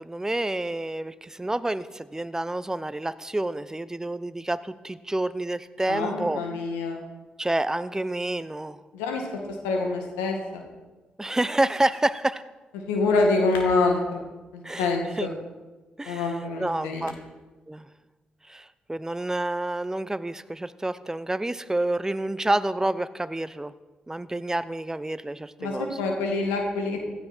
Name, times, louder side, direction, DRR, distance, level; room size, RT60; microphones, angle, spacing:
voice 1, 0.0-6.4 7.4-8.8 11.2-12.4 14.6-15.3 16.0-16.3 16.6-17.1 17.7-17.9 18.5-23.7 24.1-26.0, right 1 dB, 15° right, 15 dB, 0.8 m, -28 dB
voice 2, 5.9-7.0 8.9-9.3 9.6-10.6 12.9-14.2 14.5-15.3 16.0-17.0 25.6-27.0, left 3 dB, 85° left, 2 dB, 2.1 m, -26 dB
16.0 x 12.5 x 4.5 m, 1.2 s
hypercardioid pair, 40°, 4 cm